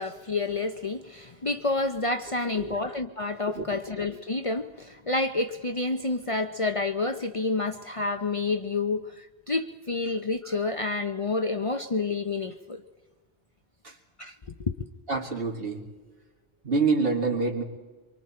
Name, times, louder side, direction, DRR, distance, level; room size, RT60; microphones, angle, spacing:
voice 1, 0.0-12.8 14.2-14.3 14.6-14.9, left 3 dB, 35° left, 6 dB, 0.7 m, -29 dB
voice 2, 2.3-2.8 3.5-3.8 13.8-14.0 15.1-15.8 16.6-17.6, right 4 dB, 60° right, -1 dB, 2.6 m, -27 dB
25.0 x 24.0 x 4.4 m, 1.2 s
omnidirectional pair, 1.1 m